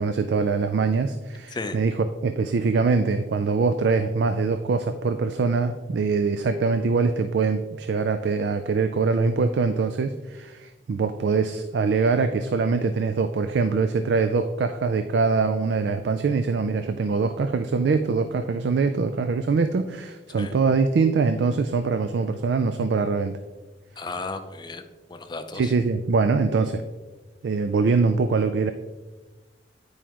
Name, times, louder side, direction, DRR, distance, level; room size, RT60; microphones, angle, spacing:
voice 1, 0.0-23.4 25.5-26.8 27.4-28.7, right 4 dB, 70° right, 9 dB, 0.3 m, -23 dB
voice 2, 24.0-24.8 25.1-25.7, left 3 dB, 25° left, 7 dB, 0.5 m, -34 dB
9.1 x 4.8 x 2.9 m, 1.2 s
head